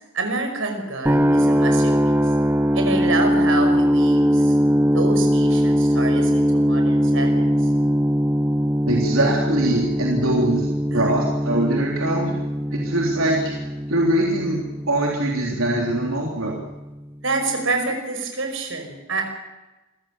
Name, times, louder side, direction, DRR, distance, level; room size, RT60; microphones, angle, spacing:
voice 1, 0.1-2.2 2.7-4.5 4.9-7.5 10.9-11.1 17.2-19.2, right 3 dB, 70° right, 4 dB, 5.4 m, -27 dB
sound 1, 1.1-17.0, equal, 10° right, 0.6 m, -21 dB
voice 2, 8.9-10.7 10.9-12.4 12.7-16.6, right 1 dB, 85° right, -2 dB, 3.7 m, -23 dB
27.0 x 16.0 x 7.5 m, 1.1 s
head